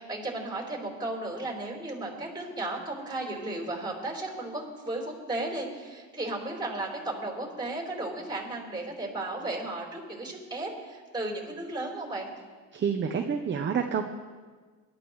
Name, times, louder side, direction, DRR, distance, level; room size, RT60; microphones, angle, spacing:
voice 1, 0.0-12.3, right 2 dB, 15° right, -2 dB, 3.9 m, -34 dB
voice 2, 12.7-14.0, right 7 dB, 35° right, 4 dB, 0.8 m, -28 dB
21.5 x 12.0 x 3.2 m, 1.4 s
cardioid pair, 115°, 34 cm